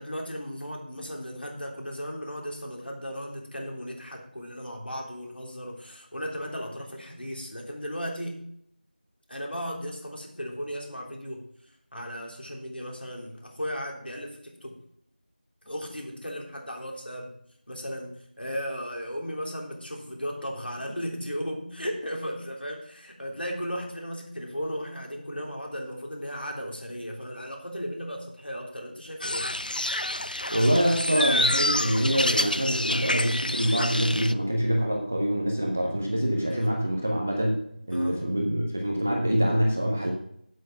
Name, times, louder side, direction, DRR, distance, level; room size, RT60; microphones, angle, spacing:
voice 1, 0.0-8.4 9.3-11.4 11.9-14.8 15.6-17.3 17.7-29.5 36.5-36.7 37.9-38.3, equal, 75° left, 0 dB, 3.4 m, -36 dB
sound 1, 29.2-34.3, left 1 dB, 55° left, 0.5 m, -28 dB
voice 2, 30.5-37.5 37.9-40.1, equal, 10° right, 1 dB, 0.5 m, -25 dB
8.3 x 8.1 x 5.9 m, 0.70 s
figure-of-eight pair, 175°, 5 cm